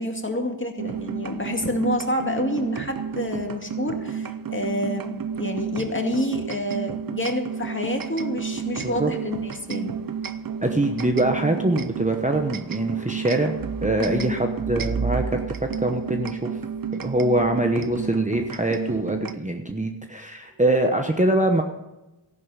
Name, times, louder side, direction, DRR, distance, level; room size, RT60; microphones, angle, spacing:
voice 1, 0.0-10.0 14.0-14.4, left 1 dB, 25° left, 3 dB, 2.2 m, -28 dB
sound 1, 0.8-19.3, right 6 dB, 45° right, 0.7 m, -31 dB
voice 2, 10.6-13.5 13.8-16.5 16.9-21.6, right 1 dB, 15° right, 4 dB, 1.0 m, -23 dB
14.5 x 11.0 x 5.6 m, 1.0 s
wide cardioid pair, 80°, 50 cm